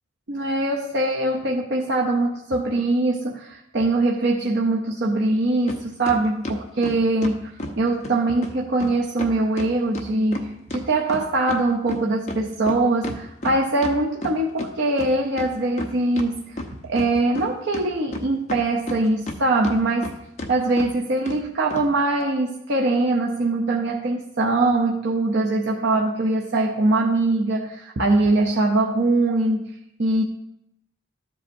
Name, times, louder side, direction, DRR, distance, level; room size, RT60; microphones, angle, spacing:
voice 1, 0.3-7.5 7.8-20.1 20.5-29.7 30.0-30.2, right 2 dB, 55° right, -1 dB, 0.7 m, -22 dB
sound 1, 5.7-5.8 6.1-7.8 8.0-8.1 8.4-8.5 8.8-8.9 9.2-11.6 11.9-14.7 15.0-15.1 15.4-16.3 16.6-17.5 17.7-19.4 19.6-20.1 20.4-20.5 20.8-20.9 21.3-21.4 21.7-21.9, left 1 dB, 35° left, 0.8 m, -32 dB
13.0 x 7.6 x 2.7 m, 0.82 s
head